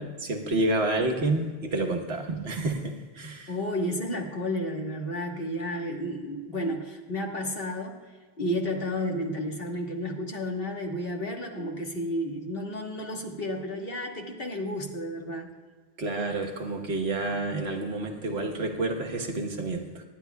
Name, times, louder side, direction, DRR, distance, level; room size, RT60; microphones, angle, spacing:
voice 1, 0.0-3.5 16.0-20.0, right 2 dB, 75° right, 3 dB, 1.5 m, -29 dB
voice 2, 3.5-8.0 8.4-15.5, equal, 60° left, 1 dB, 1.7 m, -32 dB
25.0 x 9.9 x 2.3 m, 1.4 s
omnidirectional pair, 1.1 m